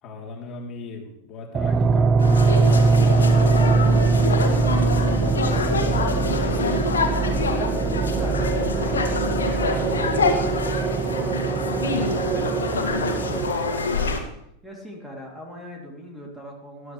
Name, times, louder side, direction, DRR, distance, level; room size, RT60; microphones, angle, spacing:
voice 1, 0.0-6.8, left 3 dB, 30° left, -1 dB, 3.6 m, -37 dB
sound 1, 1.5-13.5, right 4 dB, 25° right, 0.5 m, -22 dB
sound 2, 2.2-14.2, left 4 dB, 70° left, 2.2 m, -26 dB
voice 2, 7.5-14.2 14.6-16.9, equal, 5° right, -1 dB, 3.2 m, -39 dB
20.0 x 12.5 x 3.4 m, 0.78 s
figure-of-eight pair, 90°, 0 cm